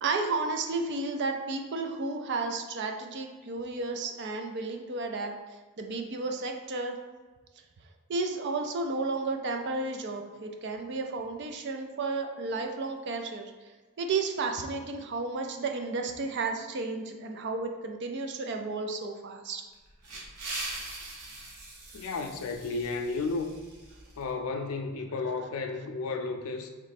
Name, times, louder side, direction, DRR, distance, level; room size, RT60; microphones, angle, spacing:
voice 1, 0.0-7.0 8.1-13.5 14.0-19.6, right 3 dB, 50° right, 4 dB, 0.5 m, -32 dB
sound 1, 19.7-24.3, right 2 dB, 90° right, 1.0 m, -41 dB
voice 2, 21.9-23.5 24.2-26.7, left 3 dB, 65° left, 5 dB, 0.5 m, -33 dB
3.1 x 3.1 x 4.2 m, 1.3 s
head